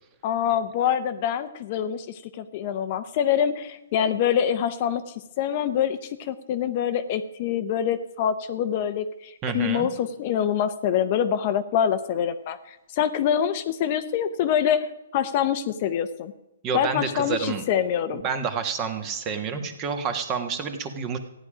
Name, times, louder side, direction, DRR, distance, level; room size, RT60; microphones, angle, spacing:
voice 1, 0.2-5.0 5.4-14.9 15.1-16.3 16.7-18.2, left 9 dB, 35° left, 10 dB, 0.7 m, -25 dB
voice 2, 9.4-9.9 16.6-17.6 18.1-21.2, right 6 dB, 20° right, 8 dB, 1.3 m, -29 dB
14.5 x 10.0 x 5.0 m, 0.93 s
hypercardioid pair, 160°, 0 cm